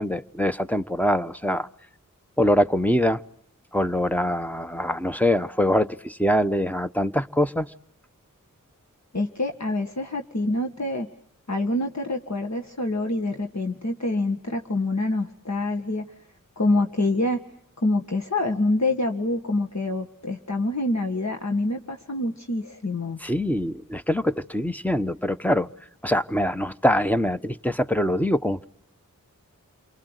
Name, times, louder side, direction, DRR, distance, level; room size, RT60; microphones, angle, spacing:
voice 1, 0.0-1.7 2.4-3.2 3.7-7.7 23.2-25.7 26.0-28.6, equal, 5° left, 1.1 m, -23 dB
voice 2, 9.1-11.1 11.5-16.0 16.6-17.4 17.8-23.2, left 2 dB, 55° left, 1.8 m, -26 dB
29.0 x 24.0 x 8.2 m
wide cardioid pair, 45°, 33 cm